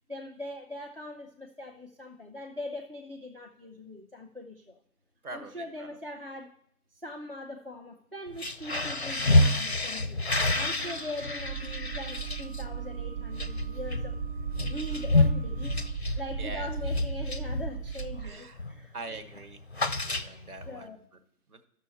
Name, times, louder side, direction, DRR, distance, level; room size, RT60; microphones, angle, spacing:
voice 1, 0.1-4.8 5.3-6.6 6.9-10.2 10.5-14.2 14.6-15.9 16.2-18.9 20.7-21.0, left 1 dB, 40° right, 5 dB, 0.4 m, -41 dB
voice 2, 5.2-6.0 10.8-10.9 14.7-15.0 16.4-16.7 18.2-18.6 18.9-20.9 21.5-21.6, right 2 dB, 65° right, 8 dB, 1.4 m, -43 dB
sound 1, 8.3-18.2 18.6-18.9 19.1-20.7, left 2 dB, 45° left, 0.4 m, -29 dB
sound 2, 10.6-15.9, right 8 dB, 20° right, 0.9 m, -50 dB
sound 3, 11.4-18.3, right 8 dB, 80° right, 1.7 m, -37 dB
13.0 x 6.3 x 4.2 m, 0.66 s
hypercardioid pair, 175°, 48 cm